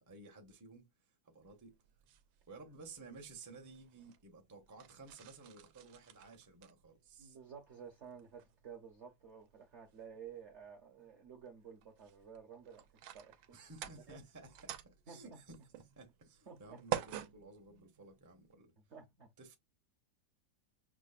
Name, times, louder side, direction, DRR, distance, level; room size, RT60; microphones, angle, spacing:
voice 1, 0.0-1.8 2.5-7.4 13.5-18.7 19.4-19.6, right 3 dB, 20° right, 0.4 m, -55 dB
sound 1, 1.5-18.5, right 10 dB, 90° right, 1.3 m, -49 dB
voice 2, 7.2-13.6 14.1-14.2 15.1-15.4 16.5-16.8 18.9-19.3, right 7 dB, 55° right, 0.8 m, -53 dB
6.0 x 2.1 x 2.3 m
omnidirectional pair, 2.0 m